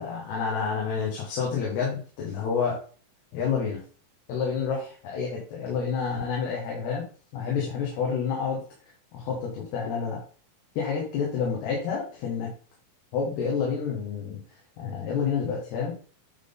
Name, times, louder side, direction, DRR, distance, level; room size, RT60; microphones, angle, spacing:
voice 1, 0.0-2.8 3.3-3.8 4.3-7.0 7.3-8.6 9.1-10.2 10.8-12.5 13.1-14.4 14.8-16.0, left 6 dB, 90° left, -3 dB, 3.6 m, -29 dB
9.4 x 3.9 x 3.9 m, 0.41 s
omnidirectional pair, 4.4 m